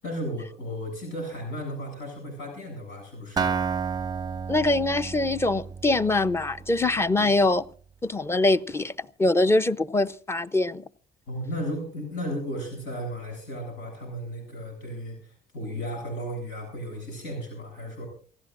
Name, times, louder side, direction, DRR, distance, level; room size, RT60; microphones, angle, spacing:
voice 1, 0.0-3.6 7.2-7.3 11.3-18.1, equal, 90° left, 8.0 m, -35 dB
Acoustic guitar, 3.4-7.2, right 6 dB, 25° right, 0.6 m, -31 dB
voice 2, 4.5-7.6 8.0-10.8, left 2 dB, 15° left, 0.7 m, -23 dB
28.0 x 16.0 x 2.6 m
cardioid pair, 110°, 17 cm